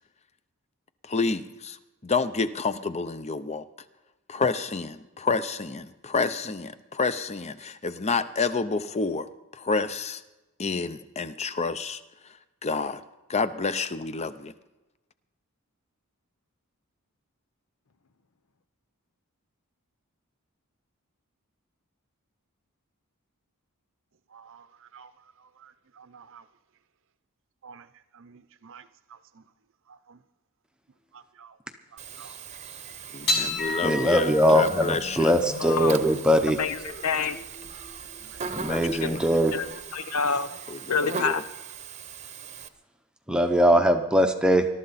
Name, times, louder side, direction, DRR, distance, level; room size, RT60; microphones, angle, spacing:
voice 1, 1.0-1.8 2.0-3.6 4.3-9.3 9.5-10.2 10.6-12.0 12.6-13.0 13.3-14.5 33.1-35.4 38.4-39.3 40.7-41.4, left 4 dB, 30° left, 0.7 m, -29 dB
voice 2, 24.3-25.1 25.4-26.4 27.6-27.9 28.1-29.4 29.9-30.2 31.1-31.6 31.9-32.3 38.2-38.7, right 6 dB, 60° right, 0.7 m, -51 dB
Buzz, 32.0-42.7, right 6 dB, 30° right, 0.9 m, -40 dB
sound 1, 33.3-39.8, left 2 dB, 55° left, 6.3 m, -34 dB
voice 3, 33.8-36.6 38.5-39.6 43.3-44.7, equal, 5° right, 0.8 m, -21 dB
voice 4, 35.6-35.9 36.6-37.4 39.0-39.2 39.5-39.7 39.9-40.5 40.9-41.4, left 5 dB, 80° left, 0.9 m, -27 dB
21.5 x 12.5 x 4.2 m
head